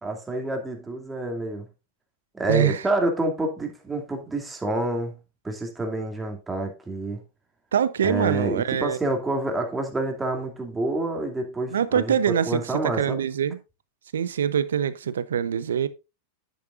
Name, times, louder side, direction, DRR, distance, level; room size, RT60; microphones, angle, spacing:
voice 1, 0.0-1.7 2.3-5.2 5.4-7.2 8.0-12.2 12.5-13.3, right 2 dB, 10° right, 2.6 m, -28 dB
voice 2, 7.7-9.0 11.7-12.6 13.0-13.6 14.1-15.9, right 8 dB, 75° right, 0.8 m, -24 dB
10.5 x 9.4 x 2.5 m
hypercardioid pair, 95°, 0 cm